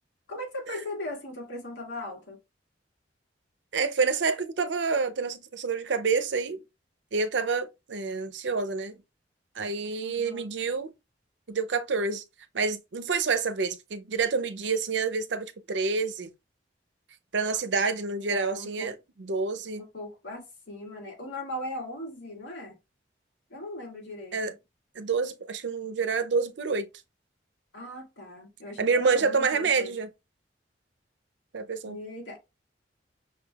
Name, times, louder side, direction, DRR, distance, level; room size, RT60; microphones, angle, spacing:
voice 1, 0.3-2.4 10.0-10.5 18.3-18.9 19.8-22.8 23.5-24.5 27.7-29.9 31.9-32.4, left 1 dB, 85° left, 2.1 m, -39 dB
voice 2, 3.7-6.6 7.1-9.0 9.6-10.9 11.5-12.2 12.5-16.3 17.3-19.8 24.3-24.5 25.0-26.9 28.8-30.1 31.5-32.0, right 4 dB, 75° right, 0.6 m, -28 dB
5.7 x 3.4 x 2.3 m
head